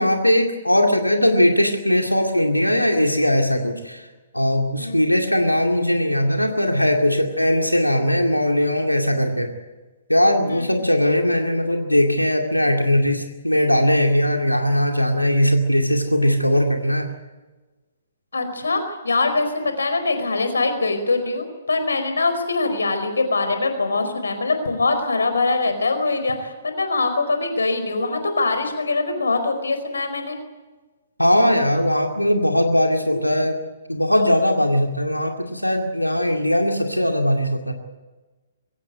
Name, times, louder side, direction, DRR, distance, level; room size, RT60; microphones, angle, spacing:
voice 1, 0.0-4.1 4.3-9.5 10.1-17.1 31.2-33.6 33.9-37.7, left 1 dB, 90° left, 3 dB, 2.3 m, -19 dB
voice 2, 18.3-30.4, left 3 dB, 70° left, 8 dB, 4.7 m, -23 dB
23.0 x 16.5 x 9.4 m, 1.2 s
figure-of-eight pair, 120°, 0 cm